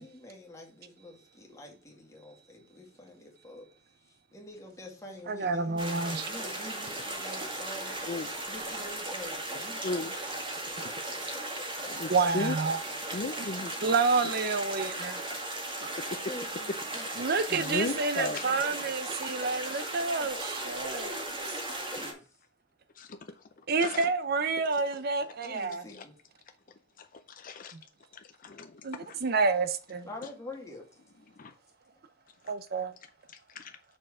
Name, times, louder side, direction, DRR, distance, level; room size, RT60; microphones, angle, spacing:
voice 1, 0.0-3.6 4.3-8.0 8.5-10.1 11.3-11.4 12.0-12.1 16.3-17.1 18.3-18.9 19.8-19.9 20.1-22.3 25.4-26.1 30.0-30.8, left 1 dB, 15° left, 2.1 m, -46 dB
voice 2, 5.3-6.3 12.1-12.8 13.8-15.2 17.2-21.3 23.7-25.8 28.8-30.1 32.5-32.9, right 4 dB, 55° right, 0.6 m, -29 dB
sound 1, 5.8-22.1, right 2 dB, 25° right, 2.0 m, -37 dB
voice 3, 9.8-10.1 11.9-12.6 13.1-13.7 15.8-16.2 17.2-18.5 23.0-23.4 23.8-24.1 25.9-26.1 27.0-27.8 28.1-29.2 31.4-31.5 33.5-33.8, left 3 dB, 45° left, 0.5 m, -36 dB
6.2 x 4.5 x 4.8 m
head